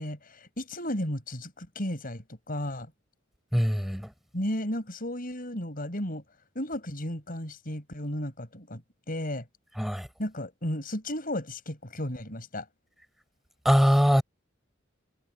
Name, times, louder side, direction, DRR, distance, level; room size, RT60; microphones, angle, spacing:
voice 1, 0.0-2.9 4.3-6.2 6.6-8.8 9.1-9.5 10.2-12.7, left 1 dB, 45° left, 7.1 m, -34 dB
voice 2, 3.5-4.1 9.8-10.1 13.6-14.2, equal, ahead, 6.4 m, -22 dB
head